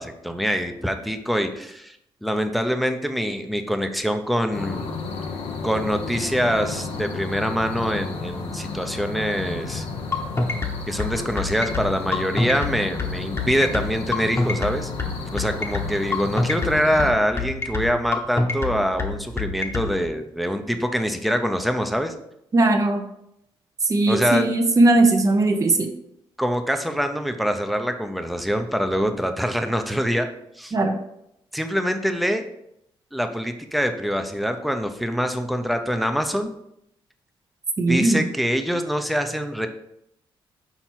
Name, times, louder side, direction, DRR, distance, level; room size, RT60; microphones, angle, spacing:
voice 1, 0.0-4.9 5.6-9.8 10.9-14.9 15.3-22.1 24.1-24.4 26.4-30.3 30.6-30.7 31.5-32.5 33.1-36.5 37.9-39.7, equal, ahead, 6 dB, 0.7 m, -24 dB
sound 1, 4.5-17.1, left 4 dB, 85° left, 1.0 m, -33 dB
sound 2, 10.1-19.9, left 3 dB, 25° left, 1.1 m, -25 dB
voice 2, 22.5-23.0 23.9-25.9 30.7-31.0 37.8-38.2, right 2 dB, 35° right, 4 dB, 0.7 m, -18 dB
5.8 x 4.4 x 4.5 m, 0.79 s
cardioid pair, 95°, 10 cm